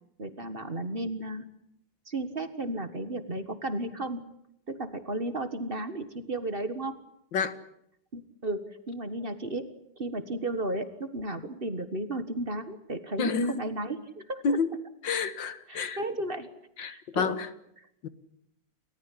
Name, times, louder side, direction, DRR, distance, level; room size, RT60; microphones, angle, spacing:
voice 1, 0.2-1.5 2.0-4.2 4.7-7.0 8.1-14.6 15.7-16.5 16.8-17.4, right 1 dB, 30° right, 11 dB, 1.7 m, -34 dB
voice 2, 13.2-13.7 14.4-14.7 15.0-16.0 16.8-17.5 18.0-18.1, left 5 dB, 85° left, 12 dB, 2.2 m, -29 dB
28.5 x 14.5 x 10.0 m, 0.78 s
omnidirectional pair, 1.9 m